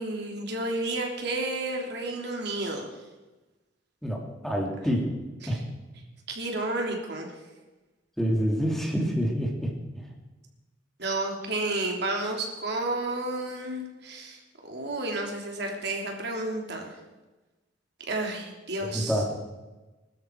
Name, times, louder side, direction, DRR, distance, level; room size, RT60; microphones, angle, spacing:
voice 1, 0.0-2.9 5.4-5.6 6.3-7.3 11.0-16.9 18.1-19.2, right 2 dB, 60° right, 1 dB, 3.1 m, -31 dB
voice 2, 4.0-5.1 5.5-5.6 8.2-9.7 18.9-19.3, equal, ahead, -1 dB, 2.6 m, -27 dB
21.5 x 13.0 x 4.7 m, 1.1 s
head